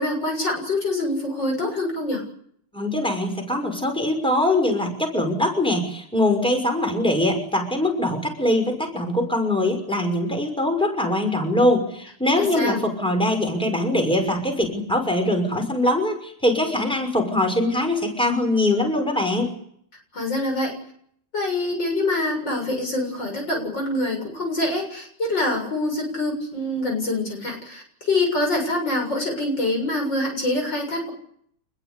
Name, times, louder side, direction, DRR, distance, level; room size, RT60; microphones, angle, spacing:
voice 1, 0.0-2.2 12.4-12.8 20.1-20.7 21.3-31.1, left 2 dB, 55° left, 3 dB, 8.0 m, -25 dB
voice 2, 2.7-19.5, left 1 dB, ahead, 4 dB, 6.1 m, -22 dB
27.0 x 21.0 x 8.5 m, 0.66 s
omnidirectional pair, 2.3 m